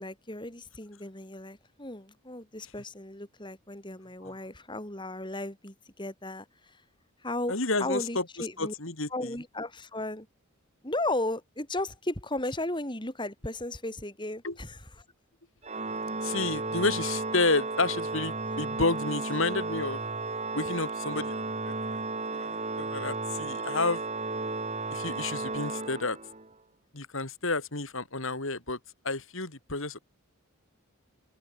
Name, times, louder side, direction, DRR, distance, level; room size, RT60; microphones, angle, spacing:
voice 1, 0.0-6.5 7.2-8.7 9.1-10.3 10.8-14.8, left 1 dB, 20° left, 3.8 m, -35 dB
voice 2, 7.5-8.2 8.6-9.4 14.4-14.6 16.2-20.0 20.5-22.0 22.3-24.0 24.9-26.2 26.9-28.8 29.0-30.0, left 3 dB, 60° left, 3.4 m, -30 dB
Organ, 15.6-26.5, right 3 dB, 30° right, 2.9 m, -34 dB
open air
head